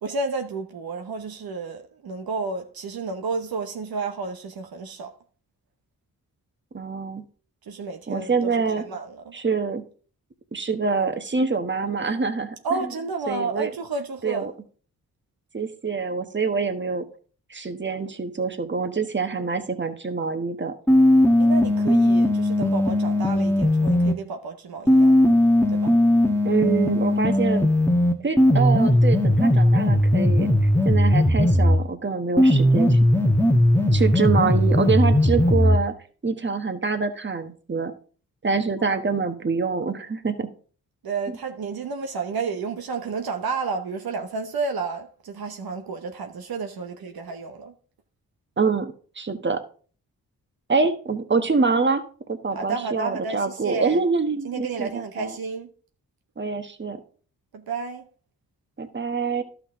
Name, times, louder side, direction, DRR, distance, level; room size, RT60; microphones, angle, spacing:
voice 1, 0.0-5.1 7.7-9.3 12.6-14.5 21.4-25.2 25.7-25.9 38.8-39.0 41.0-47.7 52.5-54.0 54.4-55.7 57.5-58.1 59.3-59.4, right 4 dB, 65° right, 1.0 m, -31 dB
voice 2, 6.7-7.2 8.1-8.9 9.3-9.8 10.5-12.5 12.8-12.9 13.3-13.7 14.2-14.5 15.5-17.1 17.5-20.7 26.4-27.7 28.2-30.5 30.8-33.0 33.9-35.9 36.2-37.9 38.4-40.5 48.6-49.6 50.7-52.0 52.3-55.4 56.4-57.0 58.8-59.4, right 4 dB, 30° right, 1.3 m, -25 dB
sound 1, 20.9-24.2 24.9-31.8 32.4-35.8, left 1 dB, 5° left, 1.3 m, -18 dB
11.5 x 6.1 x 3.7 m
supercardioid pair, 45°, 40 cm